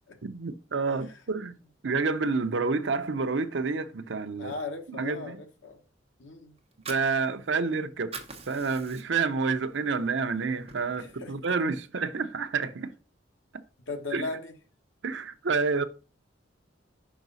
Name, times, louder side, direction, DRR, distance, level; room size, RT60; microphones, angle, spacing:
voice 1, 0.2-1.5 1.8-4.5 4.9-5.4 6.9-8.2 8.5-12.9 13.5-13.6 14.1-14.3 15.0-15.8, right 4 dB, 70° right, 0.7 m, -29 dB
voice 2, 4.4-5.8 6.2-6.6 10.9-11.3 13.9-14.5, left 3 dB, 85° left, 1.2 m, -37 dB
Fire, 6.6-7.7 8.0-9.4 9.8-9.9 10.3-11.3, right 5 dB, 30° right, 1.1 m, -43 dB
5.9 x 4.9 x 4.0 m
head